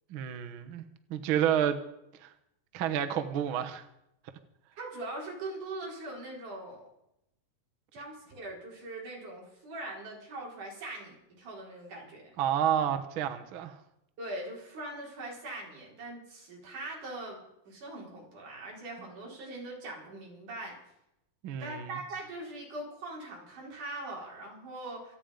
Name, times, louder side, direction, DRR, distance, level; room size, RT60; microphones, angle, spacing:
voice 1, 0.1-0.8 1.1-1.8 2.2-2.3 2.7-3.9 12.4-13.8 21.4-22.0, right 9 dB, 75° right, 1.1 m, -30 dB
voice 2, 4.8-6.9 7.9-12.3 14.2-20.8 21.6-25.2, right 2 dB, 60° right, 5.9 m, -41 dB
27.0 x 9.3 x 5.2 m
omnidirectional pair, 4.1 m